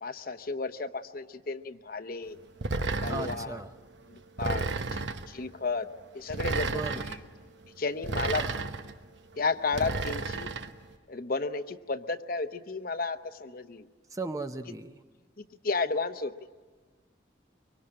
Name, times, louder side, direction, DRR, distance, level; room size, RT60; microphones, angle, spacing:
voice 1, 0.0-2.4 3.0-3.6 4.1-4.6 4.9-5.0 5.3-5.9 6.1-7.2 7.8-8.7 9.4-10.5 11.1-13.9 15.4-16.3, left 4 dB, 50° left, 9 dB, 0.9 m, -33 dB
sound 1, 2.6-3.5 4.4-5.3 6.3-7.2 8.0-8.9 9.7-10.7, right 3 dB, 80° right, 1.0 m, -32 dB
voice 2, 3.1-3.7 4.4-4.7 6.7-7.0 8.2-8.6 14.1-15.0, right 2 dB, 20° right, 8 dB, 0.7 m, -37 dB
24.0 x 24.0 x 8.8 m, 1.4 s
head